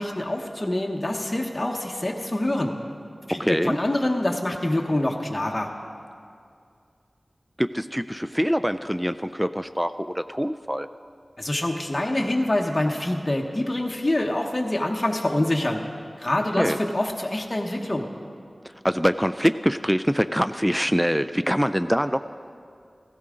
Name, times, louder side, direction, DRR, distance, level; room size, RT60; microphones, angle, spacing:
voice 1, 0.0-2.7 3.3-5.7 11.4-15.8 16.2-18.1, left 1 dB, 30° left, 0 dB, 1.0 m, -25 dB
voice 2, 3.3-3.8 7.6-10.9 16.6-16.8 18.8-22.2, equal, 5° right, 11 dB, 0.3 m, -24 dB
15.5 x 13.5 x 3.8 m, 2.3 s
wide cardioid pair, 45°, 0 cm